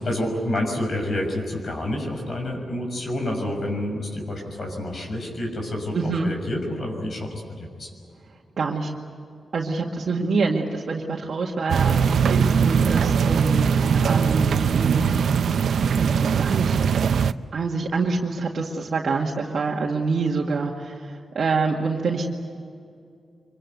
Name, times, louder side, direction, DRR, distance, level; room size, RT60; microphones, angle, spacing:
voice 1, 0.0-7.9, left 1 dB, 55° left, 2 dB, 6.5 m, -28 dB
voice 2, 5.9-6.3 8.6-8.9 9.5-15.2 15.6-16.8 17.5-22.3, right 4 dB, 60° right, -2 dB, 2.0 m, -26 dB
sound 1, 11.7-17.3, right 6 dB, 80° right, 0.6 m, -21 dB
25.0 x 24.0 x 8.0 m, 2.4 s
wide cardioid pair, 105°, 0 cm